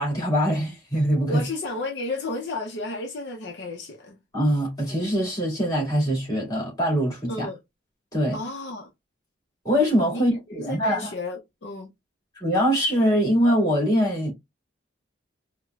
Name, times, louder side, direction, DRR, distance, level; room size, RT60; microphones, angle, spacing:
voice 1, 0.0-1.4 4.3-7.5 8.1-8.4 9.6-11.1 12.4-14.3, equal, 20° left, 2.2 m, -23 dB
voice 2, 1.2-4.2 7.3-7.6 8.3-8.9 10.1-10.2 10.5-11.9, left 2 dB, 60° left, 0.6 m, -32 dB
4.7 x 2.1 x 2.3 m
head